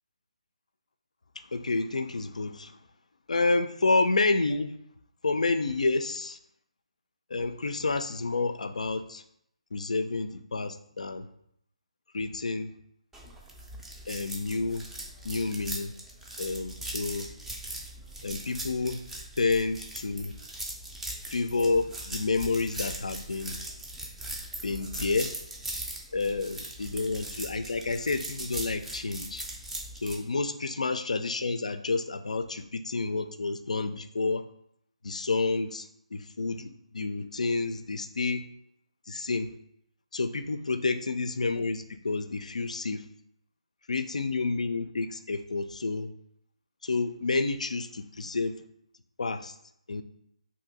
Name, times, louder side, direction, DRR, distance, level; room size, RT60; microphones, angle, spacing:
voice 1, 1.4-2.8 3.3-4.8 5.2-6.4 7.3-9.2 9.7-11.3 12.1-12.7 14.1-14.8 15.2-15.9 16.4-17.3 18.2-19.0 19.4-20.3 21.3-23.5 24.6-25.3 26.1-29.5 30.0-34.4 35.0-38.4 39.1-39.5 40.1-43.0 43.9-46.1 46.8-48.6 49.2-49.6 49.9-50.0, left 3 dB, 75° left, 9 dB, 0.3 m, -29 dB
sound 1, 13.1-30.2, right 1 dB, 5° right, 0.4 m, -40 dB
2.7 x 2.5 x 3.9 m, 0.72 s
figure-of-eight pair, 145°, 4 cm